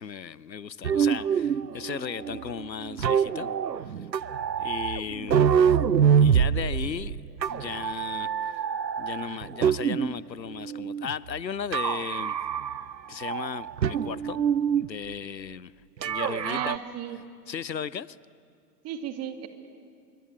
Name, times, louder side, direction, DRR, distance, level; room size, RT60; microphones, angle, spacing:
voice 1, 0.0-3.5 3.8-4.1 4.6-5.8 6.2-7.2 7.5-8.6 9.0-12.4 13.1-14.4 14.8-15.7 16.0-16.8 17.5-18.2, left 7 dB, 85° left, 21 dB, 0.7 m, -36 dB
sound 1, 0.8-10.2 10.6-11.4 11.7-12.9 13.2-14.9 16.0-16.8, right 7 dB, 85° right, 0.7 m, -26 dB
voice 2, 16.4-17.2 18.8-19.5, right 10 dB, 30° right, 8 dB, 2.1 m, -34 dB
25.5 x 23.0 x 9.8 m, 2.2 s
figure-of-eight pair, 90°, 50 cm